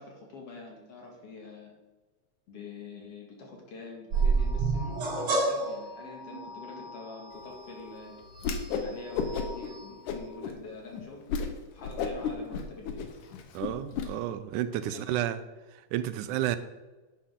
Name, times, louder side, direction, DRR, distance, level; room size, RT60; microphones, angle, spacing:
voice 1, 0.0-1.8 2.5-8.2 8.8-11.2 11.7-13.1 14.7-15.2, left 3 dB, 55° left, 0 dB, 2.8 m, -46 dB
sound 1, 4.1-10.3, right 3 dB, 60° right, 3.0 m, -31 dB
Whoosh swoosh swish, 8.4-8.9 9.1-9.7 10.1-10.5 10.9-11.0 11.3-11.5 11.8-14.1, left 6 dB, 80° left, 2.5 m, -32 dB
voice 2, 13.5-15.4 15.7-16.6, right 12 dB, 90° right, 13 dB, 2.1 m, -31 dB
11.5 x 9.0 x 3.8 m, 1.2 s
omnidirectional pair, 3.5 m